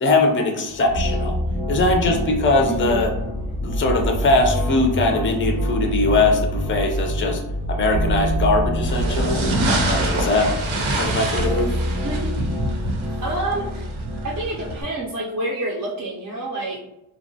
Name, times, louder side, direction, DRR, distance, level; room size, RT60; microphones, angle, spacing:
voice 1, 0.0-1.4 1.7-3.1 3.6-7.4 7.7-9.5 9.9-10.5 11.0-11.7, left 2 dB, 25° left, 3 dB, 0.4 m, -21 dB
sound 1, 0.7-10.9, equal, 80° left, 0.5 m, -28 dB
sound 2, 0.9-14.8, left 1 dB, 5° right, 0.7 m, -28 dB
voice 2, 2.7-3.1 11.9-12.3 13.2-13.9 14.2-16.8, right 2 dB, 40° right, -3 dB, 0.5 m, -28 dB
sound 3, 8.8-14.8, right 2 dB, 80° right, 0.7 m, -26 dB
2.7 x 2.1 x 2.6 m, 0.90 s
wide cardioid pair, 80°, 48 cm